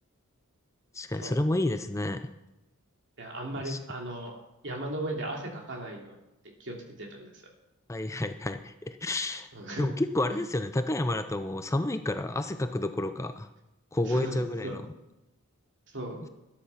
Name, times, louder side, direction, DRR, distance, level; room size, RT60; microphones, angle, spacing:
voice 1, 0.9-2.3 3.6-3.8 7.9-9.5 9.8-13.5 13.9-14.8, left 1 dB, 15° left, 9 dB, 0.5 m, -30 dB
voice 2, 3.2-6.2 6.6-7.3 9.5-9.9 10.3-10.4 14.1-14.7 15.9-16.3, right 1 dB, 55° right, 1 dB, 2.8 m, -37 dB
13.5 x 10.5 x 5.7 m, 0.94 s
head